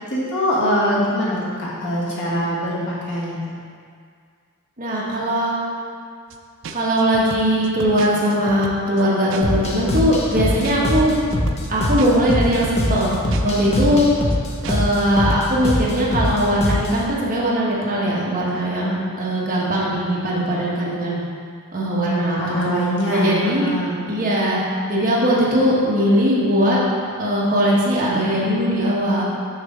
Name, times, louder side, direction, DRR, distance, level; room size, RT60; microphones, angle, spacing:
voice 1, 0.1-3.4 13.6-13.9 18.7-19.1 22.4-24.0, equal, 55° left, -7 dB, 1.7 m, -23 dB
voice 2, 4.8-5.7 6.7-11.1 11.7-13.1 13.4-14.1 14.7-18.9 19.2-21.2 21.7-22.8 23.1-23.7 24.1-24.6 24.9-26.8 27.2-29.2, equal, 40° right, -6 dB, 1.4 m, -20 dB
sound 1, 6.3-6.4 6.6-9.7 10.0-15.0 15.3-15.5, right 4 dB, 60° right, 0.4 m, -35 dB
sound 2, 9.4-17.0, left 1 dB, 30° left, 0.8 m, -23 dB
6.4 x 4.1 x 6.1 m, 2.1 s
head